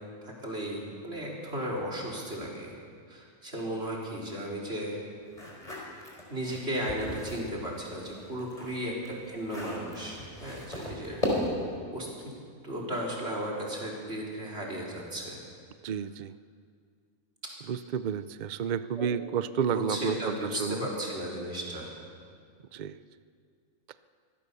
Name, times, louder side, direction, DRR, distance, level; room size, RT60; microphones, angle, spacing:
voice 1, 0.2-2.8 3.1-5.0 6.3-9.0 9.3-11.2 11.9-12.1 12.6-15.4 17.4-17.7 19.0-19.1 19.7-21.9, right 1 dB, 45° right, -3 dB, 4.4 m, -35 dB
sound 1, 5.3-7.5 8.0-11.8, left 1 dB, 25° left, 4.4 m, -36 dB
voice 2, 15.8-16.3 17.7-20.3 20.6-20.9 22.7-23.0, right 7 dB, 80° right, 14 dB, 0.4 m, -31 dB
24.5 x 16.0 x 6.9 m, 2.2 s
omnidirectional pair, 1.6 m